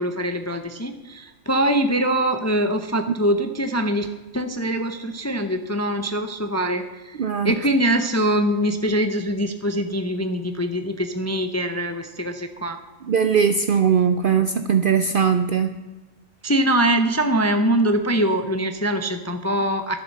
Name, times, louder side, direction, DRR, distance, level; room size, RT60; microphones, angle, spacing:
voice 1, 0.0-7.2 7.4-12.8 16.4-20.0, right 1 dB, 20° left, 7 dB, 0.4 m, -23 dB
voice 2, 7.2-7.5 13.1-15.7, right 7 dB, 60° right, 9 dB, 0.6 m, -20 dB
11.5 x 7.4 x 6.6 m, 1.2 s
omnidirectional pair, 1.4 m